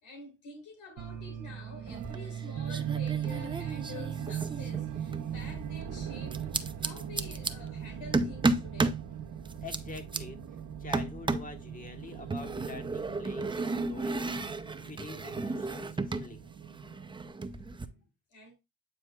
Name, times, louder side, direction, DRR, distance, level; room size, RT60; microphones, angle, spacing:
voice 1, 0.0-6.5 6.8-9.0 17.4-18.5, left 3 dB, 80° left, 3.2 m, -49 dB
sound 1, 1.0-17.3, right 9 dB, 80° right, 0.9 m, -39 dB
sound 2, 1.9-2.4 2.7-5.3 6.3-7.5 8.1-9.0 9.5-10.2 10.9-11.6 12.3-16.3 16.6-17.9, right 3 dB, 15° right, 0.5 m, -33 dB
voice 2, 9.6-10.4 10.8-16.4, left 4 dB, 25° left, 1.5 m, -46 dB
8.8 x 4.9 x 2.3 m
cardioid pair, 90°, 30 cm